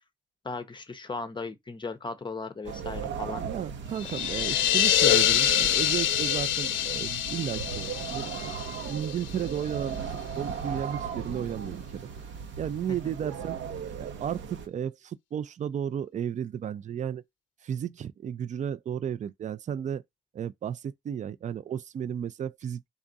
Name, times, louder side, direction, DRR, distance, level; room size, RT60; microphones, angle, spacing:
voice 1, 0.4-3.4 13.0-13.1, left 3 dB, 25° left, 0.6 m, -37 dB
sound 1, 2.6-14.7, right 7 dB, 70° right, 0.8 m, -37 dB
voice 2, 3.4-8.3 8.9-12.0 12.6-13.6 14.0-17.2 17.6-20.0 20.3-22.9, right 9 dB, 40° right, 0.4 m, -34 dB
sound 2, 4.0-9.6, left 11 dB, 80° left, 0.5 m, -26 dB
3.6 x 2.4 x 3.9 m
cardioid pair, 90°, 20 cm